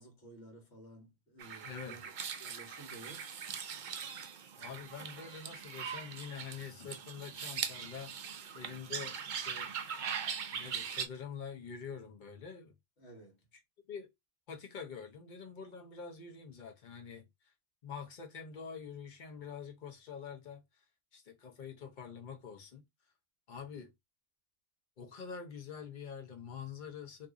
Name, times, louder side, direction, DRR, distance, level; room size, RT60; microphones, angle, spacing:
voice 1, 0.0-2.0 2.4-3.3 13.0-13.4, right 2 dB, 70° left, 1.5 m, -53 dB
sound 1, 1.4-11.1, right 7 dB, 55° right, 0.6 m, -41 dB
voice 2, 1.6-2.0 4.6-9.7 10.5-12.8 13.9-14.1 14.5-17.5 17.8-20.8 21.1-22.8 23.5-23.9 25.0-27.3, left 6 dB, 45° left, 0.9 m, -46 dB
2.6 x 2.6 x 3.6 m
omnidirectional pair, 1.2 m